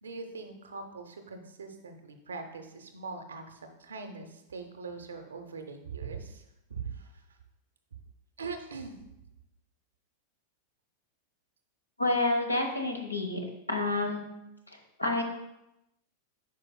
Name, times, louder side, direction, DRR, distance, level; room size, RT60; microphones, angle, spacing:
voice 1, 0.0-6.4 6.7-7.1 8.4-9.0, right 4 dB, 70° right, 7 dB, 0.6 m, -41 dB
voice 2, 12.0-13.4 13.7-14.2 15.0-15.2, left 2 dB, 85° left, 3 dB, 0.8 m, -28 dB
8.3 x 5.1 x 2.2 m, 0.87 s
figure-of-eight pair, 90°, 0 cm